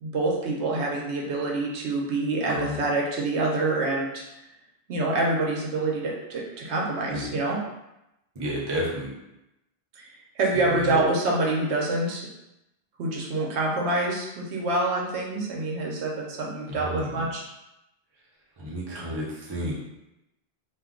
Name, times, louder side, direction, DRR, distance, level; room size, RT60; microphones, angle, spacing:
voice 1, 0.0-4.2 4.9-7.6 10.0-10.1 10.4-12.2 13.0-17.4, right 2 dB, 80° right, -2 dB, 0.9 m, -26 dB
voice 2, 8.3-9.1 10.5-11.0 16.7-17.3 18.6-19.7, equal, 25° right, -5 dB, 0.6 m, -31 dB
2.5 x 2.2 x 3.6 m, 0.91 s
omnidirectional pair, 1.1 m